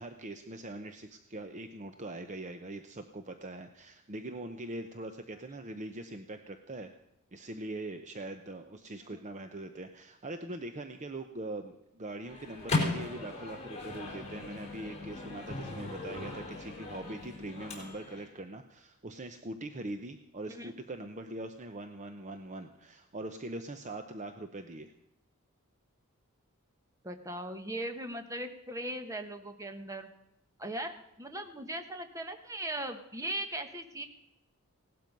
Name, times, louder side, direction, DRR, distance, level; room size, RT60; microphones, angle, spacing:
voice 1, 0.0-6.9 7.3-24.9, right 2 dB, 35° right, 7 dB, 0.7 m, -42 dB
Microwave oven, 12.2-18.3, left 2 dB, 30° left, 3.9 m, -37 dB
voice 2, 27.0-30.1 30.6-30.9 31.2-34.0, right 1 dB, 15° right, 7 dB, 1.2 m, -38 dB
17.0 x 12.0 x 5.3 m, 0.85 s
head